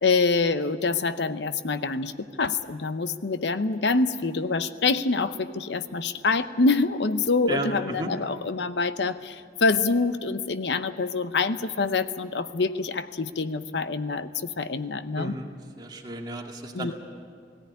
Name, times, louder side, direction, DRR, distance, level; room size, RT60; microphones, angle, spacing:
voice 1, 0.0-15.4 16.7-16.9, left 3 dB, 80° left, 12 dB, 0.8 m, -26 dB
voice 2, 15.2-15.5 15.8-16.9, right 1 dB, 25° right, 0 dB, 2.2 m, -33 dB
18.5 x 17.0 x 9.9 m, 2.1 s
head